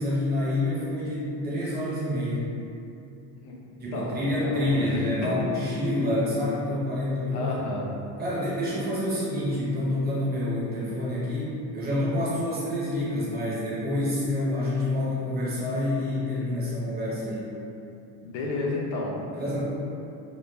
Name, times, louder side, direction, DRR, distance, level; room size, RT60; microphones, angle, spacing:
voice 1, 0.0-2.5 3.8-7.5 8.2-17.5 19.3-19.7, left 1 dB, 25° right, -8 dB, 0.7 m, -27 dB
voice 2, 3.9-5.3 7.3-7.9 18.2-19.2, left 2 dB, 60° left, -3 dB, 0.6 m, -31 dB
3.1 x 2.2 x 2.2 m, 2.7 s
cardioid pair, 145°, 42 cm